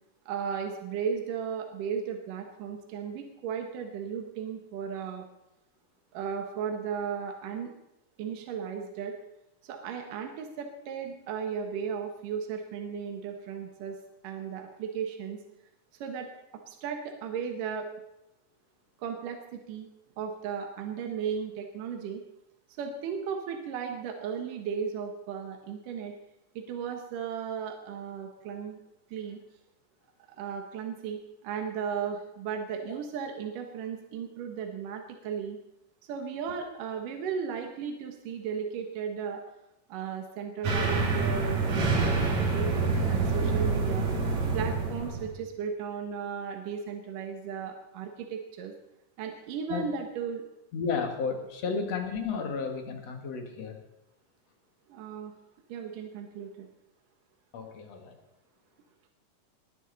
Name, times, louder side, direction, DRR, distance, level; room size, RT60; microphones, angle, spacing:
voice 1, 0.3-5.2 6.1-7.7 8.2-9.1 9.6-14.0 14.2-15.4 16.0-16.3 16.7-17.9 19.0-19.9 20.2-22.2 22.8-26.1 26.6-28.8 29.1-29.4 30.4-35.6 36.1-39.4 39.9-44.1 44.5-48.8 49.2-50.4 54.9-55.3 55.7-56.7, right 7 dB, 75° right, 3 dB, 3.0 m, -35 dB
sound 1, 40.6-45.3, right 3 dB, 55° right, 3.6 m, -27 dB
voice 2, 50.7-53.8 57.5-58.1, left 5 dB, 55° left, 4 dB, 2.8 m, -32 dB
20.0 x 11.0 x 4.1 m, 0.91 s
omnidirectional pair, 3.8 m